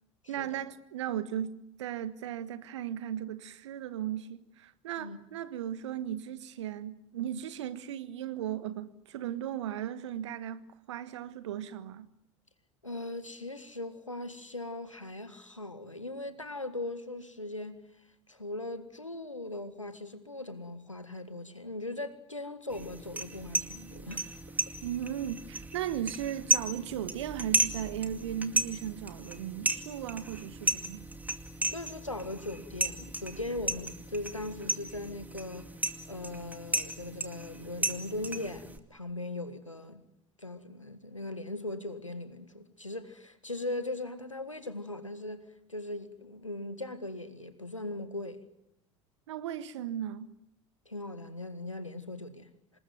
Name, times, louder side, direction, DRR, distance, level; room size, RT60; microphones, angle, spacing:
voice 1, 0.3-12.1 24.8-31.1 49.3-50.3, right 10 dB, 65° right, 1.5 m, -36 dB
voice 2, 12.8-17.8 18.3-24.3 31.7-35.7 36.1-40.0 40.4-45.4 45.7-48.4 50.9-52.5, left 2 dB, 90° left, 1.8 m, -39 dB
sound 1, 22.7-38.8, right 2 dB, 10° right, 2.3 m, -34 dB
26.5 x 21.0 x 9.3 m
figure-of-eight pair, 70°, 16 cm